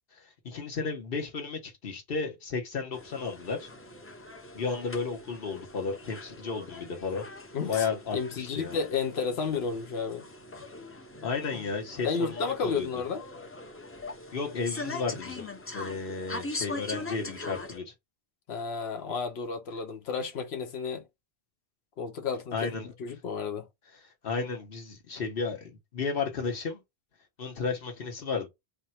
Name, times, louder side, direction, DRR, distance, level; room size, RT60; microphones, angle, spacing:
voice 1, 0.1-3.7 4.5-7.2 7.7-8.8 11.2-12.9 14.1-17.9 22.5-22.9 24.0-26.8 27.4-28.5, left 4 dB, 65° left, 1.1 m, -33 dB
sound 1, 2.9-17.8, left 2 dB, 20° left, 0.3 m, -42 dB
voice 2, 7.5-7.9 8.1-10.3 12.0-13.2 18.5-21.0 22.0-22.7 23.0-23.7, left 5 dB, 85° left, 1.0 m, -32 dB
3.5 x 2.2 x 4.2 m
omnidirectional pair, 1.0 m